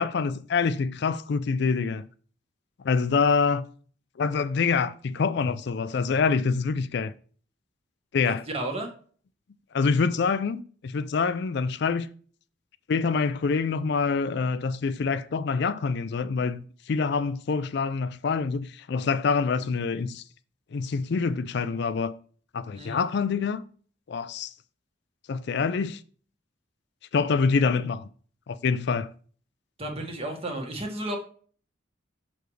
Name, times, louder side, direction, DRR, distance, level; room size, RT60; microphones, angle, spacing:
voice 1, 0.0-2.1 2.8-3.6 4.2-7.1 8.1-8.4 9.7-12.1 12.9-20.2 20.7-22.1 22.5-23.6 24.1-24.5 25.3-26.0 27.1-28.1 28.5-29.1, left 5 dB, 60° left, 0.4 m, -26 dB
voice 2, 8.2-8.9 22.7-23.0 29.8-31.2, right 1 dB, 30° right, 1.6 m, -33 dB
6.9 x 6.3 x 3.2 m
head